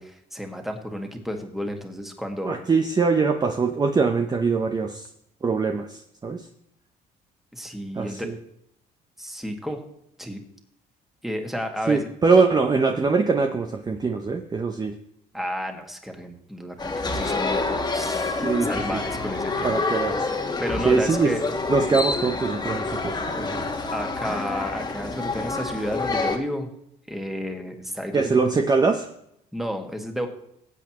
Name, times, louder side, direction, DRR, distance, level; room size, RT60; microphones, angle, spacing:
voice 1, 0.0-2.6 7.5-8.3 9.2-9.8 10.2-10.4 11.2-12.1 15.3-19.8 20.6-21.4 23.9-26.7 27.1-28.3 29.5-30.3, equal, ahead, 3 dB, 1.9 m, -31 dB
voice 2, 2.4-5.1 5.4-6.5 7.9-8.3 11.9-15.0 18.4-19.0 19.6-20.2 20.8-21.3 21.7-23.7 28.1-29.1, right 4 dB, 25° right, 5 dB, 0.8 m, -23 dB
sound 1, 16.8-26.4, left 3 dB, 25° left, 1.5 m, -27 dB
19.0 x 8.2 x 3.1 m, 0.76 s
cardioid pair, 110°, 17 cm